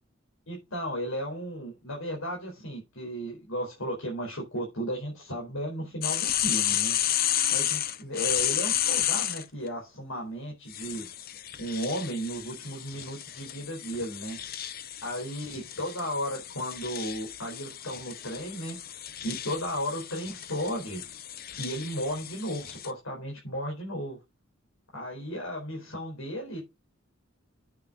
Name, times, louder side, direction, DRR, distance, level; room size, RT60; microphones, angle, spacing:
voice 1, 0.5-7.0 7.5-11.0 11.6-14.4 15.0-18.8 19.2-21.0 21.6-24.2 24.9-26.6, equal, 90° left, -1 dB, 4.7 m, -34 dB
sound 1, 6.0-9.4 10.7-22.9, left 11 dB, 45° left, 0.8 m, -32 dB
9.2 x 7.1 x 5.3 m, 0.24 s
head